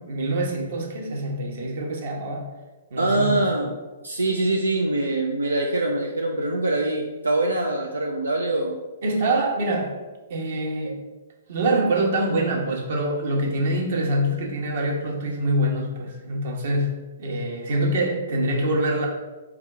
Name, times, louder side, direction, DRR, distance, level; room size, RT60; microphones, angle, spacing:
voice 1, 0.0-2.5 2.9-3.5 9.0-9.9 10.3-11.0 11.5-19.1, right 1 dB, 60° right, 0 dB, 1.1 m, -25 dB
voice 2, 3.0-3.8 4.0-8.8, right 2 dB, 90° right, 1 dB, 0.4 m, -24 dB
4.7 x 2.3 x 4.8 m, 1.2 s
hypercardioid pair, 125°, 0 cm